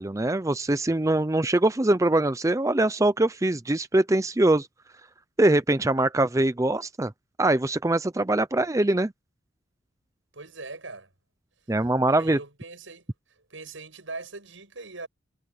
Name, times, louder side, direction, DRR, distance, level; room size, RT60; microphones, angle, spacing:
voice 1, 0.0-4.7 5.4-7.1 7.4-9.1 11.7-12.4, right 2 dB, 15° right, 0.5 m, -23 dB
voice 2, 10.3-11.1 12.1-13.0 13.5-15.1, right 3 dB, 90° right, 7.8 m, -40 dB
head